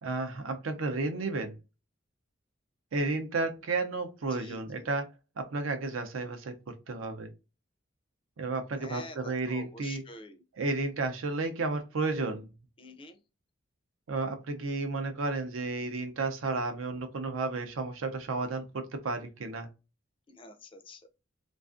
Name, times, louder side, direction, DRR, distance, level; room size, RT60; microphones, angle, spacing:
voice 1, 0.0-1.5 2.9-7.3 8.4-10.0 10.6-12.5 14.1-19.7, right 3 dB, 80° right, 7 dB, 0.5 m, -32 dB
voice 2, 4.3-4.9 8.8-10.4 12.8-13.2 20.3-21.0, left 2 dB, 25° left, 8 dB, 0.4 m, -47 dB
2.4 x 2.4 x 2.4 m, 0.28 s
head